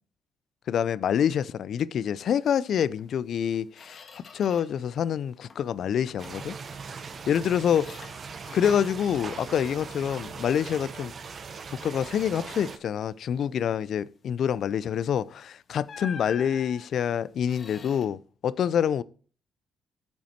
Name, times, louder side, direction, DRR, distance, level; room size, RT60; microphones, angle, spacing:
voice 1, 0.7-6.6 7.3-8.1 8.5-11.1 11.7-19.0, left 8 dB, 65° left, 0.3 m, -27 dB
Squeak, 3.0-3.1 3.5-4.9 5.2-5.8 6.2-9.0 9.3-11.2 11.6-11.8 12.2-12.9 15.0-15.2 15.9-18.1, left 5 dB, 45° left, 1.3 m, -47 dB
sound 1, 6.2-12.8, right 5 dB, 45° right, 0.8 m, -40 dB
8.8 x 5.7 x 4.4 m
cardioid pair, 90°, 0 cm